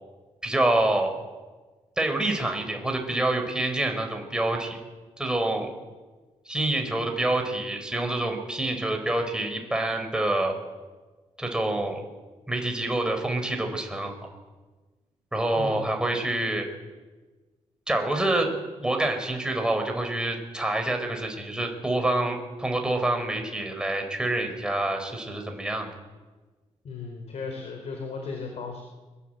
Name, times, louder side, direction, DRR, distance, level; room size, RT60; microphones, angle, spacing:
voice 1, 0.4-1.1 2.0-4.8 5.2-5.7 6.5-10.5 11.4-12.0 12.5-14.1 15.3-16.7 17.9-18.5 18.8-25.9, right 2 dB, 5° right, 3 dB, 4.6 m, -27 dB
voice 2, 26.8-28.8, left 4 dB, 65° left, 3 dB, 4.3 m, -35 dB
23.5 x 20.0 x 7.9 m, 1.3 s
cardioid pair, 95°, 12 cm